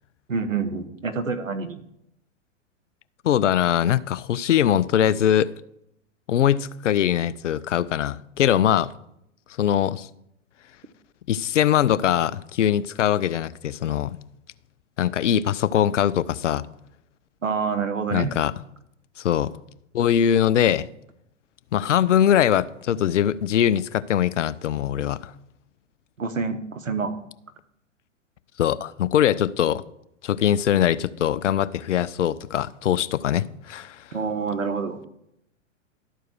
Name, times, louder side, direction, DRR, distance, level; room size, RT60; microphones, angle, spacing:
voice 1, 0.3-1.8 17.4-18.3 26.2-27.1 34.1-35.0, right 5 dB, 85° right, 1.1 m, -27 dB
voice 2, 3.2-5.5 6.3-8.9 9.6-10.1 11.3-14.2 15.0-16.7 18.1-18.5 19.2-19.6 19.9-20.9 21.7-25.3 28.6-29.8 30.2-34.1, left 10 dB, 70° left, 0.5 m, -22 dB
12.0 x 4.6 x 6.3 m
figure-of-eight pair, 105°, 39 cm